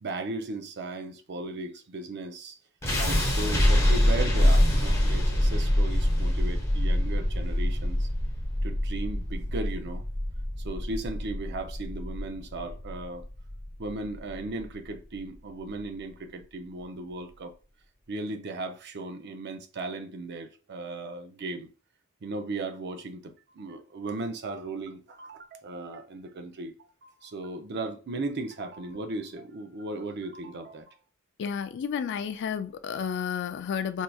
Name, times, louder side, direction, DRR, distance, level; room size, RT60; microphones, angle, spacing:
voice 1, 0.0-2.6 3.0-8.1 8.6-10.0 10.6-13.2 13.8-17.5 18.1-21.7 22.2-31.0, right 2 dB, 50° right, 0.5 m, -36 dB
sound 1, 2.8-14.9, left 1 dB, 15° left, 0.9 m, -25 dB
voice 2, 31.4-34.0, left 7 dB, 55° left, 0.4 m, -31 dB
4.5 x 2.7 x 2.3 m
head